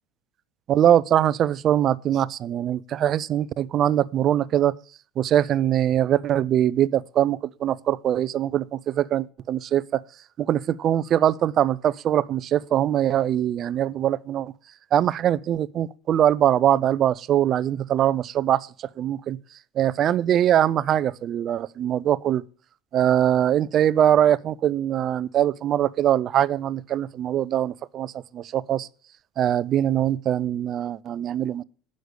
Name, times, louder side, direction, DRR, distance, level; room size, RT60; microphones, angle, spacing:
voice 1, 0.7-4.7 5.2-10.0 10.4-14.5 14.9-19.4 19.8-22.4 22.9-28.9 29.4-31.6, right 11 dB, 45° right, 0.4 m, -22 dB
9.5 x 6.4 x 6.5 m
supercardioid pair, 110°, 0 cm